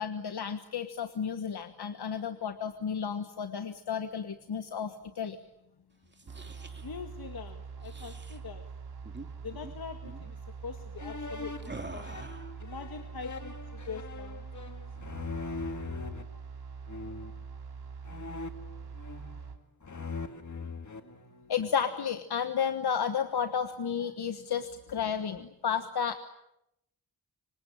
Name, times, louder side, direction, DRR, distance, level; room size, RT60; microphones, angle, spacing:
voice 1, 0.0-5.4 21.5-26.2, left 7 dB, 85° left, 8 dB, 1.4 m, -32 dB
sound 1, 6.0-6.9 7.8-8.4 9.0-9.3 9.5-9.7 10.0-10.3 11.6-12.6, right 3 dB, 30° right, 2.9 m, -46 dB
sound 2, 6.3-19.6, right 5 dB, 90° right, 3.1 m, -44 dB
voice 2, 6.8-8.7 9.4-12.2 12.6-14.8, left 5 dB, 70° left, 6 dB, 1.9 m, -43 dB
sound 3, 11.0-16.2 16.9-17.4 18.1-19.5 19.8-21.8, left 4 dB, 50° left, 2.2 m, -41 dB
26.0 x 25.5 x 9.0 m, 0.83 s
wide cardioid pair, 115°, 38 cm